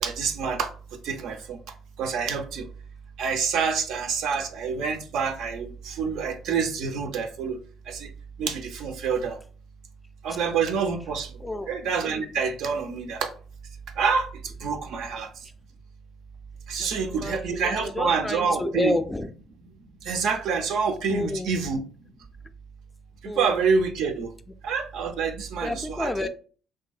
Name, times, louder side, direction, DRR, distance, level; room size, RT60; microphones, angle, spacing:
voice 1, 0.0-0.7 1.0-1.6 2.0-2.7 3.2-7.6 7.9-8.1 8.4-9.4 10.2-11.3 11.7-13.3 14.0-14.3 14.6-15.3 16.7-19.0 20.0-21.8 23.2-24.3 24.6-26.3, right 5 dB, 65° right, 0.4 m, -27 dB
voice 2, 17.0-19.3 21.1-21.5 23.2-23.5 25.6-26.3, left 2 dB, 15° left, 0.3 m, -30 dB
2.6 x 2.6 x 2.3 m
hypercardioid pair, 55°, 0 cm